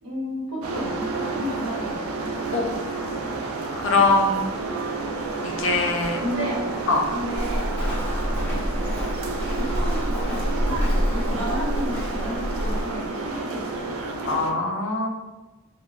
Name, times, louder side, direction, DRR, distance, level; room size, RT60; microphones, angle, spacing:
voice 1, 0.0-2.2 6.2-6.6 7.1-7.7 8.3-8.9 9.6-13.9, equal, 65° right, -5 dB, 0.9 m, -33 dB
sound 1, 0.6-14.5, right 3 dB, 85° right, 0.4 m, -30 dB
voice 2, 3.8-4.5 5.4-6.2 6.9-7.0 14.2-15.1, left 3 dB, 60° left, 1 dB, 0.4 m, -22 dB
Walk footsteps, 7.4-12.9, equal, 10° left, 0.6 m, -27 dB
3.1 x 2.1 x 2.3 m, 1.2 s
head